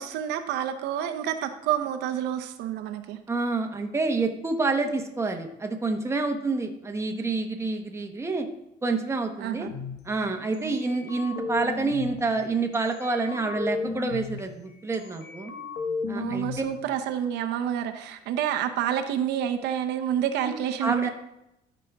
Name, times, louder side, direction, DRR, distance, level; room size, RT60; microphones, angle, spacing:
voice 1, 0.0-3.2 9.4-9.7 10.6-10.8 16.1-21.1, right 10 dB, 85° right, 8 dB, 0.8 m, -28 dB
voice 2, 3.3-8.5 8.8-9.7 10.0-15.5 16.1-16.6 20.5-20.6 20.8-21.1, right 3 dB, 15° right, 4 dB, 1.0 m, -28 dB
sound 1, 9.6-10.0 10.5-12.2 12.7-14.4 14.9-16.6, left 5 dB, 70° left, 1.3 m, -34 dB
12.5 x 5.2 x 3.5 m, 0.85 s
cardioid pair, 110°, 17 cm